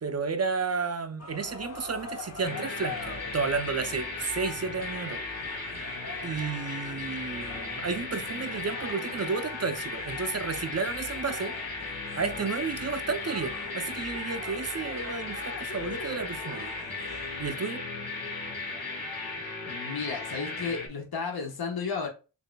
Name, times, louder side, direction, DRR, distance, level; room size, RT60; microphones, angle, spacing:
voice 1, 0.0-5.2 5.6-5.7 6.2-11.5 12.1-16.7 17.4-17.8, right 5 dB, 35° right, 0.6 m, -32 dB
sound 1, 1.2-17.5, left 3 dB, 35° left, 0.9 m, -44 dB
sound 2, 2.4-20.9, left 3 dB, 85° left, 1.7 m, -36 dB
voice 2, 19.7-22.1, left 5 dB, 55° left, 1.2 m, -33 dB
6.5 x 2.6 x 2.2 m
wide cardioid pair, 90°, 46 cm